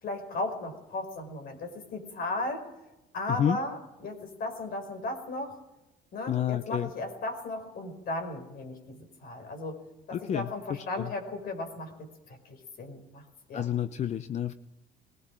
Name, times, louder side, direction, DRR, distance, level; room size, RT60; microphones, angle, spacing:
voice 1, 0.0-2.7 3.1-5.6 6.1-9.8 10.1-13.2 13.5-13.7, left 2 dB, 60° left, 5 dB, 5.4 m, -36 dB
voice 2, 6.3-6.9 10.1-10.5 10.9-11.1 13.5-14.5, left 9 dB, 40° left, 12 dB, 0.7 m, -29 dB
21.0 x 19.5 x 6.4 m, 0.98 s
cardioid pair, 110°, 17 cm